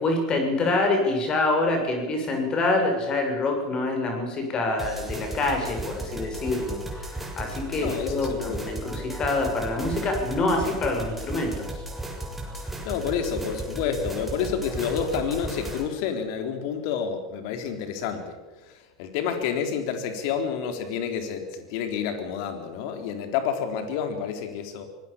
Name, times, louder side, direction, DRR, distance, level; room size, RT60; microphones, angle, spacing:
voice 1, 0.0-11.8, left 2 dB, 35° left, 4 dB, 7.1 m, -26 dB
sound 1, 4.8-15.8, right 1 dB, 5° right, 7.0 m, -35 dB
voice 2, 7.8-8.6 12.8-18.4 19.0-24.8, left 7 dB, 60° left, 6 dB, 4.0 m, -29 dB
24.5 x 19.5 x 7.3 m, 1.2 s
hypercardioid pair, 85°, 2 cm